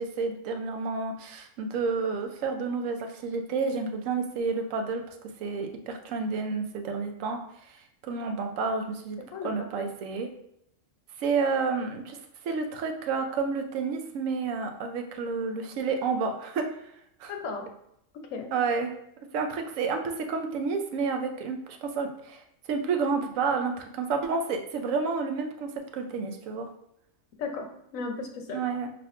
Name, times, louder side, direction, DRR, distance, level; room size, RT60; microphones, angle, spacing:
voice 1, 0.0-5.0 5.4-7.4 7.7-7.8 8.0-10.3 11.2-12.2 12.4-16.7 17.2-17.3 18.5-18.9 19.3-26.7 28.5-28.9, right 4 dB, 85° right, 5 dB, 1.0 m, -30 dB
voice 2, 9.3-9.9 17.3-17.7 18.3-18.5 27.4-28.6, left 4 dB, 85° left, 4 dB, 1.1 m, -35 dB
5.7 x 2.5 x 2.4 m, 0.74 s
omnidirectional pair, 1.3 m